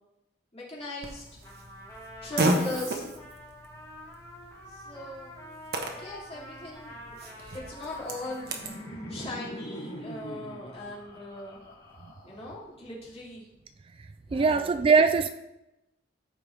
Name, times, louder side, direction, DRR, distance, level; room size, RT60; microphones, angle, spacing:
voice 1, 0.5-1.2 2.2-3.1 4.7-5.3 5.9-8.6 9.1-11.6 12.2-13.5 14.3-14.8, left 2 dB, 35° left, -6 dB, 2.8 m, -39 dB
Fart, 1.0-8.8, right 1 dB, 60° right, 1.2 m, -34 dB
Trumpet, 1.4-9.3, left 1 dB, 20° left, 3.2 m, -47 dB
Laughter, 7.9-12.7, equal, 75° left, 2.6 m, -43 dB
voice 2, 14.3-15.3, right 5 dB, 30° right, 9 dB, 0.3 m, -21 dB
14.0 x 5.3 x 3.3 m, 0.93 s
head